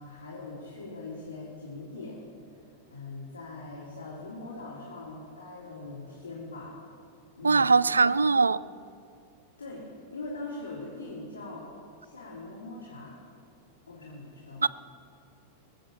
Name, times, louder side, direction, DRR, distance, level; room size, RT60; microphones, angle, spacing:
voice 1, 0.0-2.2 2.9-6.7 7.4-8.2 8.6-8.7 9.6-9.9 10.1-11.7 12.0-13.2 13.9-14.7, left 2 dB, 85° left, -5 dB, 3.0 m, -41 dB
voice 2, 7.4-8.6 14.6-14.7, right 4 dB, 90° right, 18 dB, 0.3 m, -21 dB
21.0 x 7.7 x 7.2 m, 2.5 s
hypercardioid pair, 95°, 0 cm